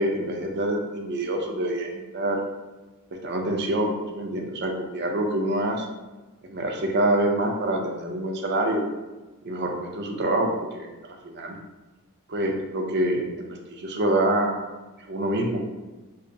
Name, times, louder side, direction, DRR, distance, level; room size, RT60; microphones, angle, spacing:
voice 1, 0.0-2.4 3.2-5.9 6.4-8.8 9.4-10.5 10.7-11.6 12.3-14.6 15.1-15.6, right 1 dB, 50° right, 2 dB, 0.5 m, -26 dB
5.6 x 2.0 x 2.6 m, 1.2 s
head